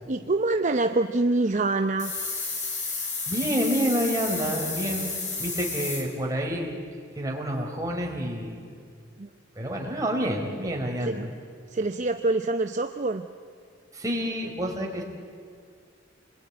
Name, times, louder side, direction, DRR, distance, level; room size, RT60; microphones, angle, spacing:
voice 1, 0.1-2.2 9.2-9.3 11.1-11.3 11.7-13.3, right 2 dB, 40° right, 7 dB, 0.8 m, -25 dB
sound 1, 2.0-6.0, left 4 dB, 40° left, 4.4 m, -31 dB
voice 2, 3.3-5.1 5.4-6.7 7.2-8.6 9.6-11.3 13.9-15.0, equal, 20° right, -1 dB, 4.1 m, -28 dB
28.0 x 21.0 x 9.5 m, 2.2 s
head